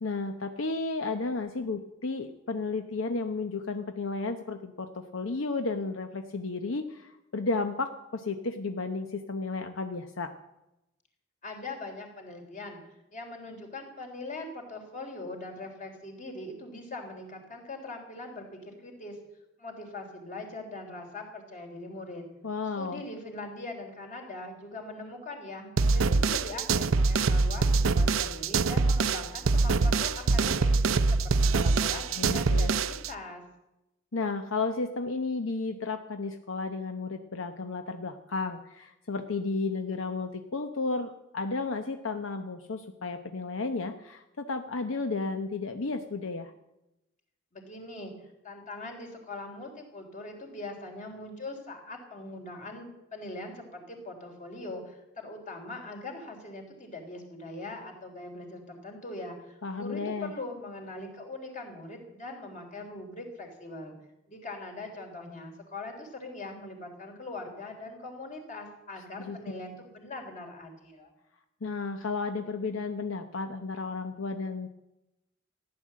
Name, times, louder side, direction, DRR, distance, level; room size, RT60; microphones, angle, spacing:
voice 1, 0.0-10.3 22.4-23.0 32.2-32.7 34.1-46.5 59.6-60.3 69.2-69.4 71.6-74.7, left 3 dB, 80° left, 7 dB, 0.9 m, -33 dB
voice 2, 11.4-12.8 13.1-19.2 19.6-22.2 22.8-30.7 31.1-33.4 47.5-63.9 64.3-71.1, left 2 dB, 40° left, 3 dB, 3.5 m, -41 dB
sound 1, 25.8-33.1, right 3 dB, 90° right, 0.6 m, -24 dB
15.0 x 10.5 x 7.5 m, 0.91 s
head